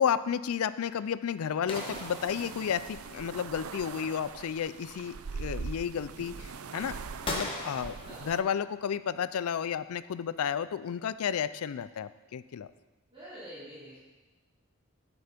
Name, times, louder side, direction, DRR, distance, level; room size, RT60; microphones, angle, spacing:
voice 1, 0.0-7.0 7.3-7.9 8.2-12.7, left 8 dB, 85° left, 15 dB, 0.4 m, -32 dB
sound 1, 1.7-3.1 7.2-8.8, left 1 dB, 25° left, 1.3 m, -39 dB
sound 2, 1.7-8.4, right 5 dB, 85° right, 0.5 m, -42 dB
voice 2, 8.0-8.3 13.1-14.0, equal, 25° right, -11 dB, 2.7 m, -46 dB
8.1 x 8.0 x 5.1 m, 1.1 s
head